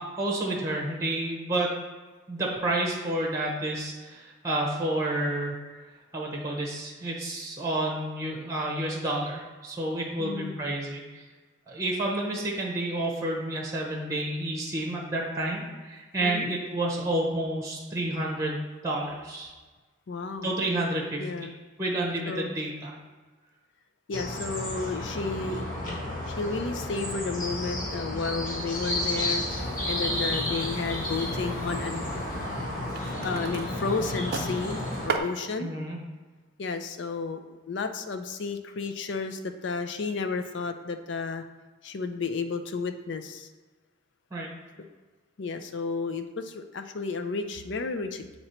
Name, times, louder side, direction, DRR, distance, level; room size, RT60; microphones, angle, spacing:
voice 1, 0.0-1.7 2.3-5.6 6.1-11.2 11.7-19.5 20.4-21.5 21.8-23.0 35.6-36.0 44.3-44.5, right 1 dB, 15° right, -1 dB, 0.9 m, -30 dB
voice 2, 10.2-10.6 16.2-16.5 20.1-20.5 21.2-21.5 22.3-22.5 24.1-25.8 26.3-29.4 29.8-32.1 33.2-35.7 36.6-37.4 37.7-41.4 41.8-43.5 45.4-48.2, left 4 dB, 65° left, 7 dB, 0.4 m, -32 dB
sound 1, 24.1-35.1, left 1 dB, 45° left, 1.6 m, -32 dB
sound 2, 29.5-35.2, right 5 dB, 50° right, 0.5 m, -39 dB
7.7 x 2.9 x 4.3 m, 1.3 s
head